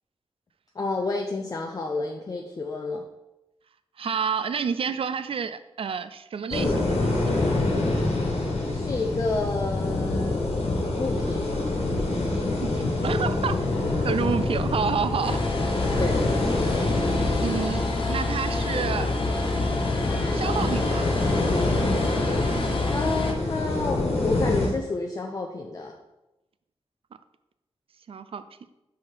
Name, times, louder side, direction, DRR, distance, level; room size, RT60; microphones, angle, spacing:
voice 1, 0.7-3.0 8.7-10.4 11.0-11.4 12.1-12.7 15.9-16.2 22.9-25.9, left 3 dB, 35° left, 1 dB, 0.5 m, -30 dB
voice 2, 4.0-7.2 12.6-12.7 13.0-13.6 14.0-15.4 17.4-19.1 20.3-21.0 28.1-28.4, right 6 dB, 60° right, 12 dB, 0.4 m, -29 dB
sound 1, 6.5-24.7, left 2 dB, 80° left, 1.5 m, -26 dB
sound 2, 15.2-23.3, left 2 dB, 55° left, 1.1 m, -28 dB
5.6 x 4.8 x 4.6 m, 0.93 s
wide cardioid pair, 150°, 11 cm